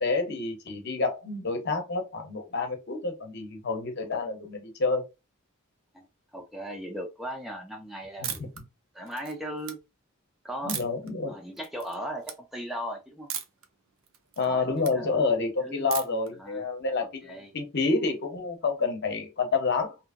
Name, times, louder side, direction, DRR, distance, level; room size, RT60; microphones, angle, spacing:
voice 1, 0.0-5.0 10.6-11.4 14.4-20.0, left 4 dB, 55° left, 0.8 m, -28 dB
voice 2, 6.3-8.3 8.9-9.8 10.4-10.8 11.3-13.3 14.4-14.7 14.9-15.3 15.6-15.9 16.4-16.6 17.2-17.5, equal, ahead, 0.4 m, -37 dB
sound 1, 8.2-8.6 9.1-9.7 10.7-11.1 11.6-12.0 12.2-12.4 13.3-13.7 14.0-14.9 15.9-16.3, right 9 dB, 65° right, 0.5 m, -36 dB
2.8 x 2.5 x 2.4 m
head